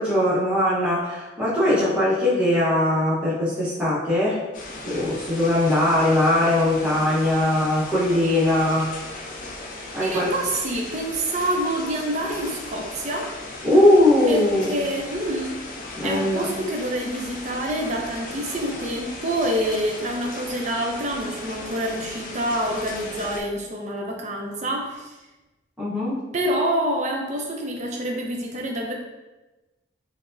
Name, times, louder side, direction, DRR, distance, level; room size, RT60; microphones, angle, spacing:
voice 1, 0.0-4.4 4.8-8.9 9.9-10.3 13.6-14.7 16.0-16.5 25.8-26.2, left 1 dB, 5° right, -10 dB, 0.7 m, -20 dB
sound 1, 4.5-23.4, left 2 dB, 45° left, 0.5 m, -37 dB
voice 2, 10.0-13.3 14.3-14.4 14.7-15.6 16.0-25.2 26.3-28.9, right 1 dB, 35° right, 0 dB, 0.4 m, -27 dB
4.5 x 2.0 x 2.5 m, 1.1 s
head